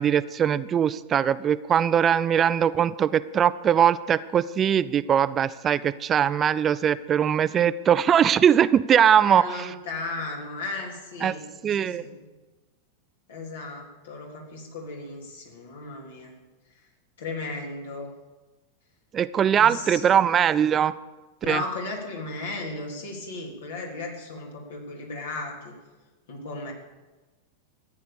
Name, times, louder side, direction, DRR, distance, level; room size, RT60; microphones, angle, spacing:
voice 1, 0.0-9.7 11.2-11.3 11.6-12.0 19.1-20.9 21.5-21.6, right 9 dB, 30° right, 16 dB, 0.4 m, -21 dB
voice 2, 9.2-12.3 13.3-16.3 17.2-18.1 19.5-20.1 21.4-25.8 26.3-26.7, left 3 dB, 70° left, 0 dB, 3.4 m, -35 dB
14.5 x 9.4 x 7.0 m, 1.2 s
figure-of-eight pair, 95°, 0 cm